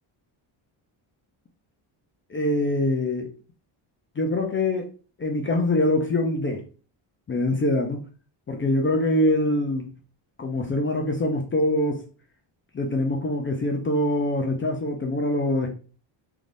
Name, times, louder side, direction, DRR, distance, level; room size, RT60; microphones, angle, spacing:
voice 1, 2.3-3.3 4.2-4.9 5.2-6.6 7.3-8.0 8.5-9.9 10.4-12.0 12.7-15.7, left 1 dB, 25° left, 2 dB, 0.4 m, -24 dB
2.6 x 2.3 x 3.3 m, 0.37 s
cardioid pair, 110°, 48 cm